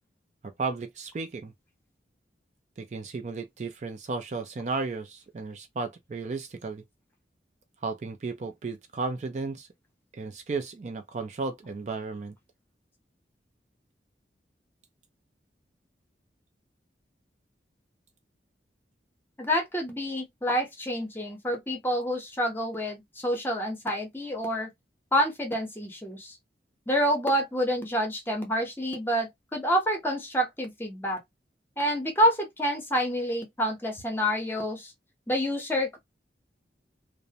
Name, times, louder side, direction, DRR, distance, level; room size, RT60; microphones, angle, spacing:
voice 1, 0.4-1.5 2.8-6.8 7.8-9.7 10.1-12.3, right 4 dB, 40° right, 0.3 m, -34 dB
voice 2, 19.4-24.7 25.1-26.4 26.9-31.2 31.8-34.9 35.3-36.0, equal, 10° left, 0.7 m, -28 dB
2.5 x 2.0 x 2.7 m
head